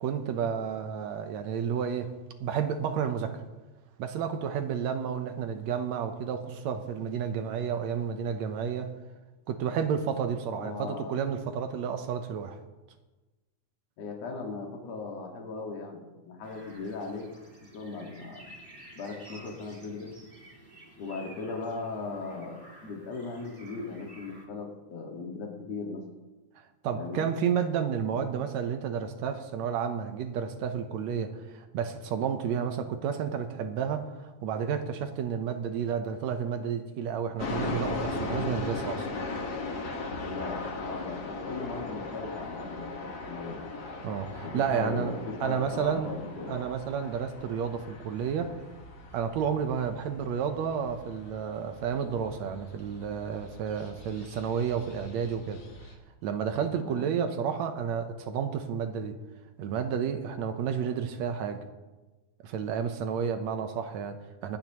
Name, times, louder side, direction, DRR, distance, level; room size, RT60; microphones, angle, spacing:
voice 1, 0.0-2.1 2.4-3.4 4.0-8.9 9.5-12.6 26.8-39.1 44.0-45.1 45.4-46.1 46.5-48.6 49.1-55.6 56.2-59.2 59.6-61.6 62.4-64.6, right 7 dB, 75° right, 7 dB, 1.9 m, -31 dB
voice 2, 10.6-11.2 14.0-17.3 17.6-18.5 19.0-20.1 21.0-26.0 26.9-27.3 40.2-43.7 44.4-46.7 56.8-57.1, left 3 dB, 60° left, 1 dB, 2.9 m, -38 dB
sound 1, 16.4-24.5, right 1 dB, 20° right, 2.2 m, -52 dB
sound 2, 37.4-55.9, left 3 dB, 45° left, 1.5 m, -39 dB
25.5 x 9.3 x 3.0 m, 1.2 s
omnidirectional pair, 3.4 m